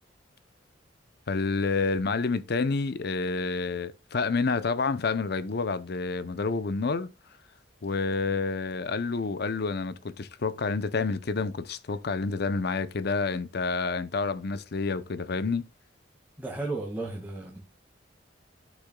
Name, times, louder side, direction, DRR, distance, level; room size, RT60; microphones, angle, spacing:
voice 1, 1.3-7.1 7.8-15.6, left 4 dB, 55° left, 0.6 m, -29 dB
voice 2, 16.4-17.6, right 2 dB, 10° right, 1.9 m, -34 dB
14.0 x 6.0 x 2.3 m
head